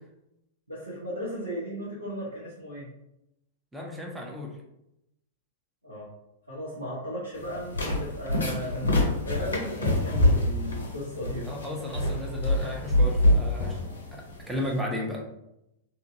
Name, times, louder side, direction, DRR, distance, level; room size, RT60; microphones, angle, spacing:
voice 1, 0.7-2.9 5.8-6.1 6.5-11.5 11.9-12.1, equal, 85° right, -9 dB, 0.9 m, -36 dB
voice 2, 3.7-4.5 11.5-13.8 14.1-15.2, left 1 dB, 5° right, -1 dB, 0.7 m, -34 dB
sound 1, 7.3-14.8, left 1 dB, 70° left, 0.6 m, -26 dB
2.9 x 2.5 x 2.6 m, 0.86 s
figure-of-eight pair, 95°, 0 cm